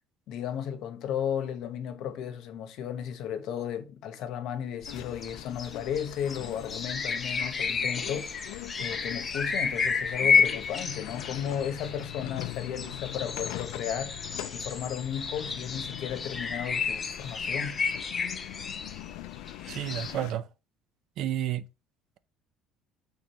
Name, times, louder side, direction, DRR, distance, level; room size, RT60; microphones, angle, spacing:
voice 1, 0.3-17.8, left 9 dB, 60° left, 1.0 m, -34 dB
sound 1, 4.8-20.1, left 5 dB, 20° left, 0.7 m, -31 dB
sound 2, 4.9-20.3, left 18 dB, 85° left, 0.4 m, -43 dB
voice 2, 19.7-20.4 21.2-21.6, right 11 dB, 55° right, 0.6 m, -30 dB
7.3 x 3.8 x 4.2 m
cardioid pair, 155°, 0 cm